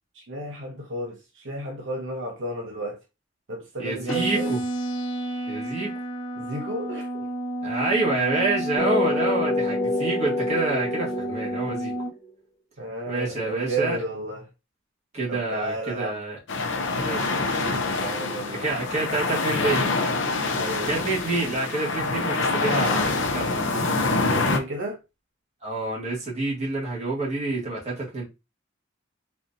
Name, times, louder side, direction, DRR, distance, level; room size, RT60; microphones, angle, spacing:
voice 1, 0.1-3.0 3.5-4.5 6.4-7.3 12.8-14.5 15.3-16.2 18.0-18.7 20.6-21.0 24.2-25.0, right 1 dB, 70° right, 0.8 m, -32 dB
voice 2, 3.8-4.6 5.5-5.9 7.6-11.9 13.1-14.0 15.1-16.4 16.9-17.8 18.5-19.9 20.8-23.6 25.6-28.2, right 3 dB, 30° right, 1.5 m, -28 dB
sound 1, 4.1-12.1, right 1 dB, 80° left, 1.0 m, -30 dB
sound 2, 8.8-12.3, left 2 dB, 20° left, 1.1 m, -28 dB
sound 3, 16.5-24.6, left 3 dB, 65° left, 0.6 m, -25 dB
4.3 x 2.7 x 2.6 m
head